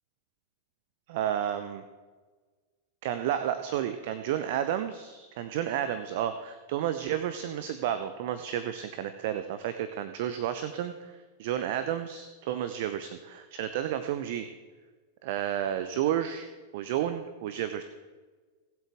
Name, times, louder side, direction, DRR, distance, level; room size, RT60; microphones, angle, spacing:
voice 1, 1.1-1.8 3.0-11.1 11.4-14.5 15.2-17.8, right 10 dB, 50° right, 10 dB, 0.7 m, -31 dB
19.5 x 7.8 x 3.5 m, 1.4 s
figure-of-eight pair, 90°, 0 cm